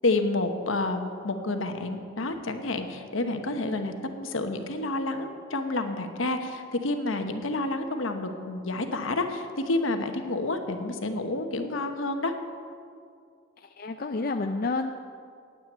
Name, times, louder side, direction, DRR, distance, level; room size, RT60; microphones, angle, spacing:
voice 1, 0.0-12.3, left 2 dB, 75° left, 6 dB, 1.1 m, -29 dB
voice 2, 13.6-15.0, left 3 dB, 45° left, 5 dB, 0.4 m, -30 dB
9.3 x 9.2 x 8.7 m, 2.3 s
head